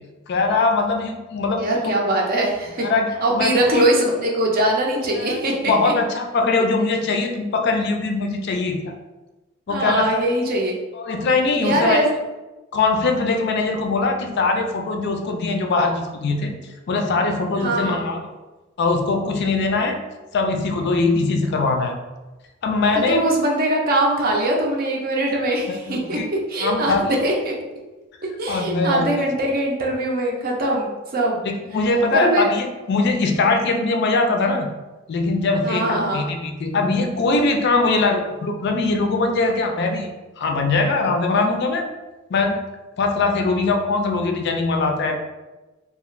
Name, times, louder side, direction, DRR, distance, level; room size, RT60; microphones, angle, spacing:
voice 1, 0.3-1.9 2.8-3.8 5.2-8.9 9.7-10.3 10.9-12.0 12.7-16.5 16.9-18.2 18.8-20.0 20.3-21.9 22.6-23.3 25.7-26.3 26.5-27.1 28.5-29.3 31.4-34.7 35.1-40.1 40.4-41.9 42.3-42.6 43.0-45.1, left 3 dB, 55° left, 3 dB, 0.4 m, -21 dB
voice 2, 1.6-2.9 3.2-5.9 9.7-10.7 11.5-12.1 17.6-18.1 23.1-26.2 26.5-27.5 28.4-31.4 32.1-32.5 35.6-36.2, right 1 dB, 50° right, 0 dB, 0.5 m, -22 dB
2.4 x 2.4 x 3.1 m, 1.1 s
head